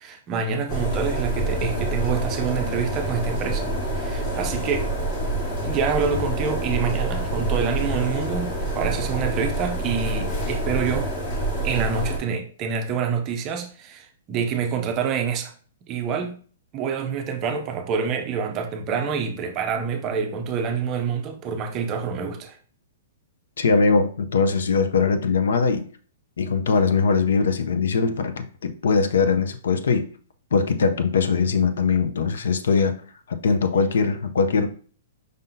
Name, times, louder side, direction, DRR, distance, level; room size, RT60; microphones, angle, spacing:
voice 1, 0.0-4.9 5.6-11.1 11.6-15.5 15.8-16.4 16.7-22.6, right 6 dB, 20° right, 4 dB, 0.4 m, -27 dB
sound 1, 0.7-12.2, right 1 dB, 25° left, 0.9 m, -27 dB
voice 2, 23.6-25.9 26.4-30.1 30.5-33.0 33.3-34.7, left 5 dB, 80° left, 9 dB, 0.6 m, -21 dB
5.1 x 2.7 x 3.8 m, 0.43 s
hypercardioid pair, 175°, 0 cm